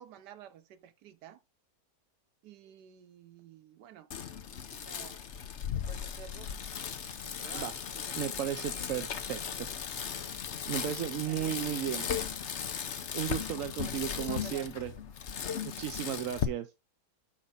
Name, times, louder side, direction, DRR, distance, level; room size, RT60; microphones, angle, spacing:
voice 1, 0.0-1.4 2.4-4.1 4.7-5.2 5.7-6.5 7.2-9.1 11.3-11.6 13.8-14.9, right 10 dB, 90° right, 1.4 m, -51 dB
Bicycle, 4.1-16.4, left 8 dB, 50° left, 1.0 m, -37 dB
voice 2, 8.1-9.7 10.7-12.1 13.1-14.9 15.6-16.7, right 11 dB, 65° right, 0.9 m, -35 dB
5.9 x 5.5 x 4.1 m
omnidirectional pair, 1.7 m